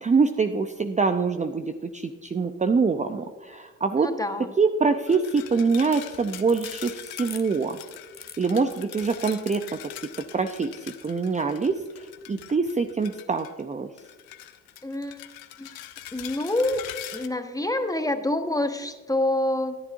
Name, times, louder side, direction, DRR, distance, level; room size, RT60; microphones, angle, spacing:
voice 1, 0.0-4.2 4.6-7.8 8.4-9.8 10.3-13.9, right 4 dB, 20° right, 7 dB, 0.6 m, -25 dB
voice 2, 4.0-4.5 14.8-15.2 15.6-15.7 16.1-16.9 17.1-19.8, left 1 dB, 10° left, 7 dB, 1.2 m, -27 dB
sound 1, 5.1-13.6 14.0-17.3, left 14 dB, 75° left, 0.8 m, -43 dB
sound 2, 6.1-11.1, left 5 dB, 25° left, 1.0 m, -45 dB
13.5 x 10.5 x 2.6 m, 1.4 s
hypercardioid pair, 45°, 36 cm